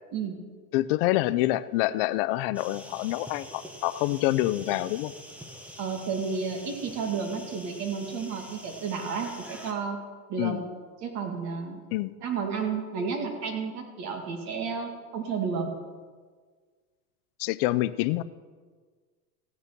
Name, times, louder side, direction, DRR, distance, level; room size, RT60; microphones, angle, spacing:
voice 1, 0.7-5.1 10.4-10.6 11.9-12.1 17.4-18.2, left 16 dB, 45° left, 13 dB, 0.4 m, -26 dB
sound 1, 2.5-9.7, equal, 5° right, 0.8 m, -46 dB
voice 2, 5.8-10.0 10.3-10.6 11.0-11.8 12.2-15.7, right 5 dB, 40° right, 3 dB, 2.3 m, -32 dB
15.0 x 9.7 x 5.9 m, 1.5 s
supercardioid pair, 165°, 44 cm